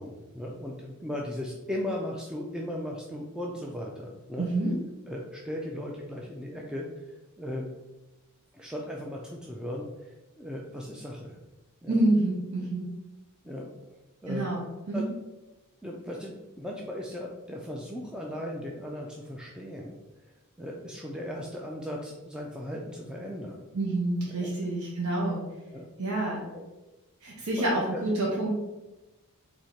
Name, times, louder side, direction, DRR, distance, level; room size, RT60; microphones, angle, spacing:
voice 1, 0.0-4.5 5.1-6.9 7.4-7.7 8.5-11.4 11.8-12.0 13.4-13.7 14.2-14.5 14.9-15.1 15.8-19.9 20.6-23.6 24.4-24.5 25.7-25.9 26.5-26.6 27.5-28.0, left 1 dB, 5° right, -2 dB, 0.4 m, -37 dB
voice 2, 4.4-4.7 11.9-12.9 14.3-15.1 23.7-25.4 26.0-26.4 27.2-28.5, right 2 dB, 75° right, -4 dB, 0.9 m, -28 dB
4.2 x 2.7 x 4.4 m, 1.1 s
head